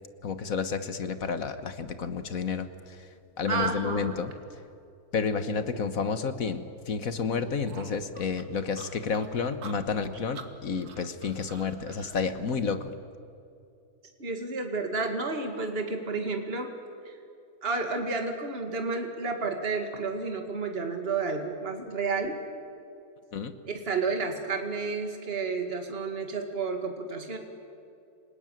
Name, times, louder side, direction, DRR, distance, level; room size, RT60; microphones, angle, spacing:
voice 1, 0.2-2.7 3.4-4.3 5.1-12.9 23.3-23.5, left 5 dB, 65° left, 10 dB, 1.7 m, -30 dB
voice 2, 3.5-4.2 14.2-16.7 17.0-17.2 17.6-22.4 23.7-27.4, right 4 dB, 40° right, 4 dB, 2.4 m, -31 dB
sound 1, 7.7-12.2, right 5 dB, 80° right, 2.1 m, -47 dB
28.0 x 19.0 x 9.2 m, 2.6 s
omnidirectional pair, 1.6 m